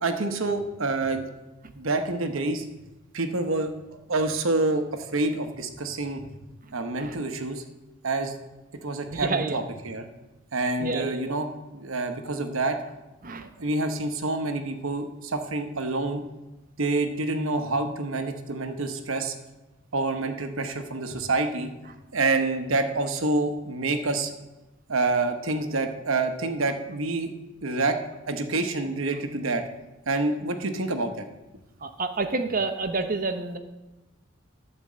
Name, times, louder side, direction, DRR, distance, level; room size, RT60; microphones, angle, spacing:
voice 1, 0.0-1.2 1.7-2.6 3.1-3.7 4.1-6.2 6.7-7.6 8.0-8.4 8.8-10.1 10.5-12.8 13.6-16.2 16.8-19.3 19.9-21.7 22.1-24.3 24.9-27.3 27.6-28.0 28.3-29.6 30.1-31.3, right 2 dB, 80° right, 7 dB, 1.0 m, -27 dB
voice 2, 9.1-9.6 10.8-11.3 13.2-13.5 31.8-33.6, right 3 dB, 40° right, 8 dB, 0.8 m, -28 dB
12.5 x 4.5 x 7.4 m, 1.0 s
head